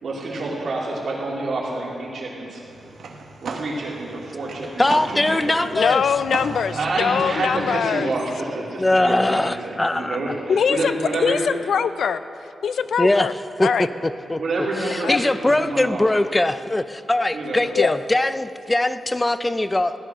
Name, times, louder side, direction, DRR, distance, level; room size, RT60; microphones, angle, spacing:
voice 1, 0.0-2.6 3.4-5.7 6.7-11.5 14.4-16.0 17.3-17.6, right 2 dB, 55° right, -4 dB, 3.1 m, -28 dB
sound 1, 2.5-8.0, right 4 dB, 70° right, 1.4 m, -36 dB
voice 2, 4.8-6.0 8.8-10.2 13.0-13.3 13.6-14.4 14.8-19.9, left 1 dB, 10° left, 12 dB, 0.4 m, -21 dB
voice 3, 5.7-8.1 10.5-12.2 12.6-13.3 13.6-13.9 15.0-15.2 17.7-17.9, left 7 dB, 70° left, 13 dB, 0.5 m, -22 dB
16.0 x 12.0 x 6.2 m, 2.6 s
wide cardioid pair, 180°, 0 cm